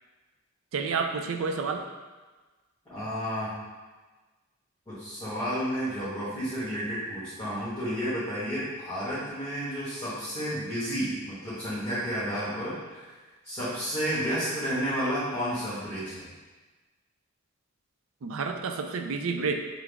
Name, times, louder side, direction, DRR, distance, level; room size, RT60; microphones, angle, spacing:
voice 1, 0.7-1.9 18.2-19.5, right 5 dB, 70° right, 5 dB, 0.4 m, -29 dB
voice 2, 2.9-3.6 4.9-13.1 13.4-16.3, equal, 15° left, -12 dB, 1.3 m, -31 dB
5.8 x 2.0 x 3.4 m, 1.3 s
head